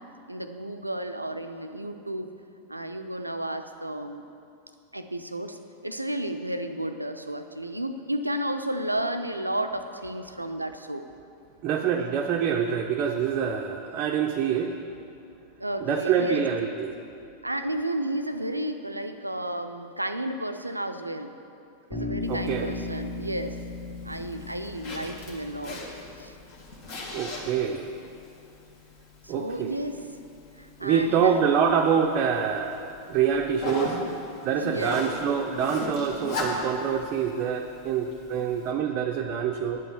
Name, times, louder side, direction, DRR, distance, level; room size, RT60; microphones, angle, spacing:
voice 1, 0.3-2.3 2.7-4.2 4.9-11.1 15.6-16.5 17.4-21.3 21.9-23.6 24.0-25.8 26.2-26.3 29.2-30.0 30.6-31.4 34.6-35.0, right 1 dB, 85° right, 8 dB, 0.5 m, -32 dB
voice 2, 11.6-14.8 15.8-16.9 22.3-22.7 27.1-28.0 29.3-29.8 30.8-32.8 33.1-34.0 34.4-39.8, right 7 dB, 35° right, 2 dB, 0.5 m, -26 dB
Bass guitar, 21.9-25.9, left 3 dB, 15° left, 2.4 m, -36 dB
Zipper (clothing), 22.2-38.7, left 2 dB, 50° left, 1.7 m, -39 dB
9.3 x 5.4 x 7.3 m, 2.6 s
figure-of-eight pair, 90°, 0 cm